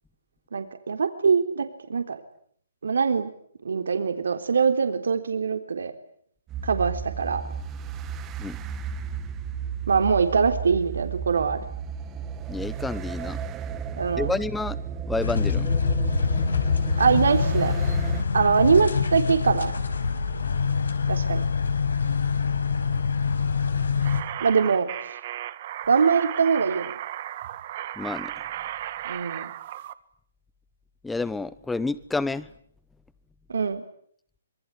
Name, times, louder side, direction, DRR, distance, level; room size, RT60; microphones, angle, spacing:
voice 1, 0.5-2.2 2.8-3.3 3.6-5.9 6.6-7.4 9.9-11.6 14.0-14.3 17.0-17.7 18.3-19.7 21.1-21.5 24.4-25.2 25.9-26.9 29.0-29.5 33.5-33.8, right 5 dB, 80° right, 8 dB, 3.7 m, -23 dB
sound 1, 6.5-18.2, right 7 dB, 20° right, 2.0 m, -34 dB
voice 2, 12.5-13.4 14.2-14.8 15.1-15.7 28.0-28.3 31.0-32.5, left 3 dB, 5° left, 18 dB, 1.1 m, -29 dB
sound 2, 15.2-24.2, left 5 dB, 90° left, 5.3 m, -25 dB
sound 3, 24.0-29.9, right 13 dB, 40° right, 1.7 m, -35 dB
26.5 x 21.5 x 10.0 m, 0.64 s
hypercardioid pair, 155°, 0 cm